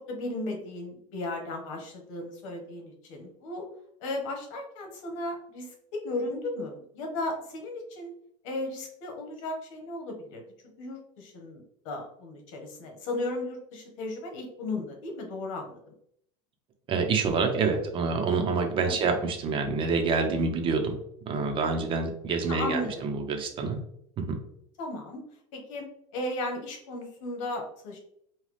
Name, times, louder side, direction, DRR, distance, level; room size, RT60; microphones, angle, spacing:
voice 1, 0.0-3.7 4.0-8.1 8.4-10.4 10.8-15.8 18.9-19.1 22.4-23.1 24.8-25.2 25.5-25.9 26.1-28.0, left 2 dB, 80° left, 2 dB, 1.3 m, -35 dB
voice 2, 16.9-20.9 21.3-23.8 24.2-24.4, right 4 dB, 35° right, 4 dB, 0.8 m, -27 dB
5.6 x 2.3 x 3.2 m, 0.70 s
cardioid pair, 145°, 16 cm